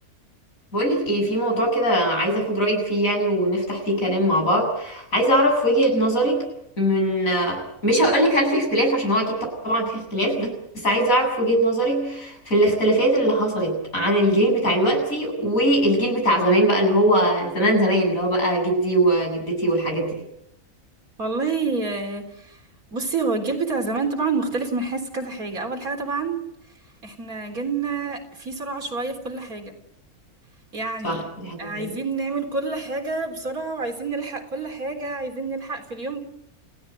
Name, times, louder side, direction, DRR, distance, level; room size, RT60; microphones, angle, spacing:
voice 1, 0.7-6.5 6.8-9.4 9.6-20.1 31.0-31.9, right 1 dB, 65° left, 2 dB, 8.4 m, -21 dB
voice 2, 21.2-22.6 22.9-26.4 27.0-29.7 30.7-31.2 31.6-36.2, right 4 dB, 70° right, 3 dB, 4.2 m, -28 dB
29.0 x 16.5 x 9.3 m, 0.79 s
omnidirectional pair, 1.6 m